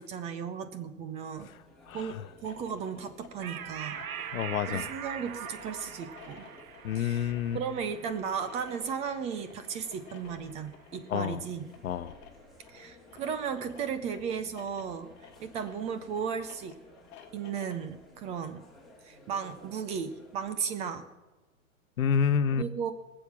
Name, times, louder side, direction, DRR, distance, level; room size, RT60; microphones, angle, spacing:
voice 1, 0.0-1.5 1.9-2.2 2.4-4.0 4.7-6.5 6.9-11.7 12.7-16.8 17.3-18.7 19.0-21.1 22.5-22.9, right 7 dB, 15° right, 11 dB, 0.5 m, -35 dB
sound 1, 1.3-20.5, left 1 dB, ahead, 2.1 m, -57 dB
voice 2, 1.9-2.2 3.9-4.1 4.3-4.9 6.8-7.6 11.1-11.4 11.8-12.2 22.0-22.6, left 7 dB, 80° left, 14 dB, 1.0 m, -29 dB
sound 2, 2.3-17.9, left 8 dB, 25° left, 1.6 m, -54 dB
sound 3, 3.4-10.3, right 8 dB, 90° right, 1.0 m, -42 dB
19.0 x 7.6 x 7.1 m, 1.2 s
hypercardioid pair, 140°, 41 cm